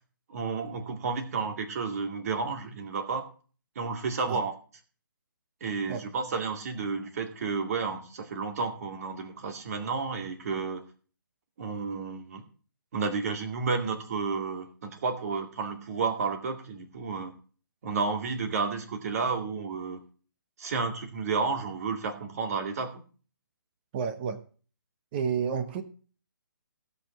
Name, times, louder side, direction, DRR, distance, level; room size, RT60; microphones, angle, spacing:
voice 1, 0.3-3.3 3.8-4.5 5.6-10.8 11.6-12.4 12.9-17.3 17.8-20.0 20.6-23.0, right 4 dB, 45° right, 6 dB, 2.2 m, -31 dB
voice 2, 23.9-24.4 25.1-25.8, right 7 dB, 30° right, 9 dB, 1.1 m, -30 dB
16.0 x 5.7 x 6.0 m, 0.40 s
figure-of-eight pair, 140°, 11 cm